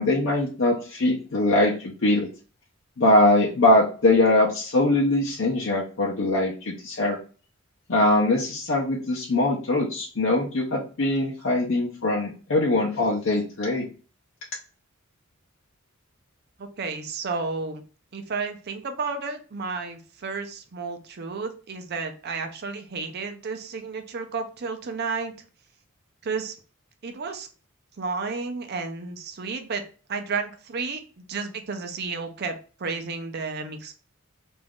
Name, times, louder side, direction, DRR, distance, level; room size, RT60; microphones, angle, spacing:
voice 1, 0.0-2.3 3.0-7.2 7.9-13.9, left 2 dB, 60° left, -4 dB, 0.6 m, -22 dB
voice 2, 16.6-17.8 18.1-25.3 26.2-26.6 27.0-27.5 28.0-32.5 32.8-33.9, right 4 dB, 55° right, 6 dB, 0.5 m, -32 dB
2.5 x 2.4 x 3.5 m, 0.37 s
head